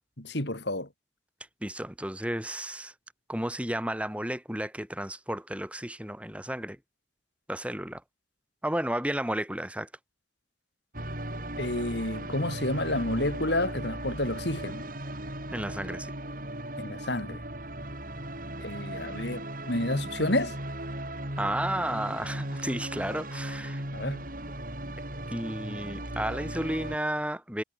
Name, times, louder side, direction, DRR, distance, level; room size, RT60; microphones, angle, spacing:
voice 1, 0.2-0.9 11.6-14.8 16.8-17.4 18.6-20.6 23.9-24.2, left 1 dB, 65° left, 5.3 m, -30 dB
voice 2, 1.6-2.9 3.3-6.8 7.5-8.0 8.6-9.9 15.5-16.1 21.4-23.8 25.3-27.6, right 1 dB, 5° right, 4.2 m, -32 dB
sound 1, 10.9-27.0, right 1 dB, 45° right, 7.9 m, -37 dB
head